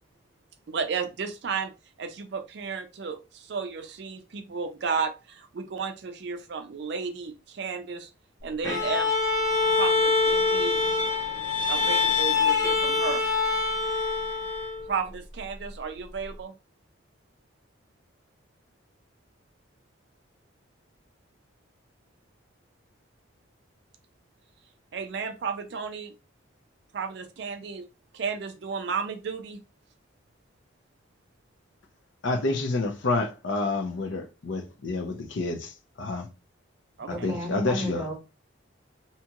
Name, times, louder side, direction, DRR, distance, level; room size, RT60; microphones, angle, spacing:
voice 1, 0.7-1.7 2.0-8.1 8.4-9.1 9.8-10.8 11.7-13.2 14.9-16.5 24.9-26.1 26.9-27.9 28.1-29.6 37.0-37.3, right 5 dB, 55° right, 0.4 m, -33 dB
Bowed string instrument, 8.6-14.9, left 4 dB, 15° left, 0.6 m, -24 dB
voice 2, 32.2-36.3 37.1-38.1, left 3 dB, 70° left, 0.5 m, -29 dB
voice 3, 37.1-38.2, right 1 dB, 10° right, 1.0 m, -33 dB
2.8 x 2.3 x 2.8 m
head